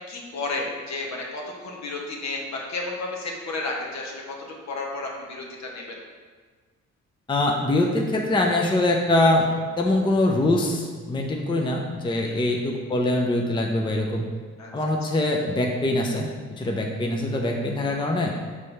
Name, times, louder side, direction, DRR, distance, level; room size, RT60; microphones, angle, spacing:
voice 1, 0.0-4.3 4.7-5.8 12.2-12.6 14.6-14.7, left 3 dB, 65° left, -1 dB, 1.3 m, -32 dB
voice 2, 7.3-14.3 14.7-18.3, left 1 dB, 15° left, 1 dB, 0.6 m, -23 dB
5.4 x 3.3 x 5.4 m, 1.5 s
cardioid pair, 90°, 30 cm